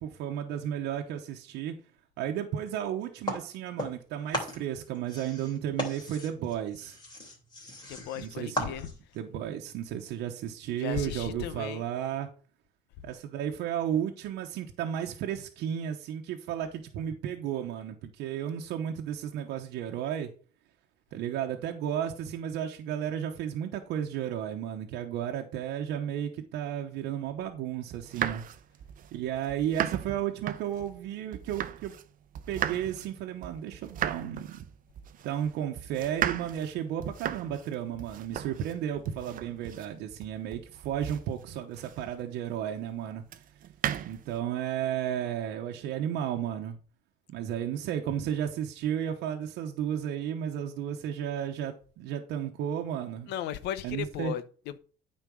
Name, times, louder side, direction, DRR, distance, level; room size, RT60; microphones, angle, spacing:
voice 1, 0.0-1.7 2.2-7.0 8.2-8.7 9.1-12.3 13.0-20.3 21.1-28.4 29.1-31.9 32.5-34.6 35.2-43.2 44.1-46.8 47.3-53.3 53.8-54.3, right 10 dB, 85° right, 1.0 m, -33 dB
sound 1, 3.3-4.1 4.3-9.2, left 1 dB, 25° left, 3.3 m, -37 dB
voice 2, 7.9-8.9 10.7-11.9 53.3-54.8, left 11 dB, 85° left, 0.8 m, -36 dB
sound 2, 27.9-32.1 32.3-42.3 43.3-44.4, right 10 dB, 55° right, 0.7 m, -37 dB
9.3 x 4.5 x 6.2 m
cardioid pair, 110°, 17 cm